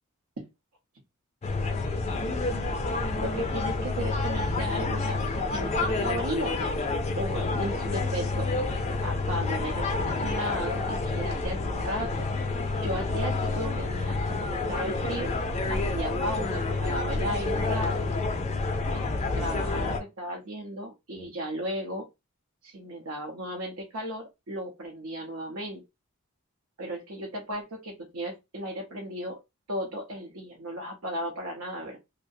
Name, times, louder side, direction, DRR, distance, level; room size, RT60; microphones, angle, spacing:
sound 1, 1.4-20.0, left 3 dB, 30° left, 0.3 m, -29 dB
voice 1, 3.1-6.7 7.2-8.5 9.0-12.3 12.8-15.3 15.7-18.0 18.8-19.0 19.3-22.1 22.6-25.8 26.8-29.4 29.7-32.0, equal, 70° right, -1 dB, 0.7 m, -35 dB
2.3 x 2.0 x 2.6 m, 0.23 s
head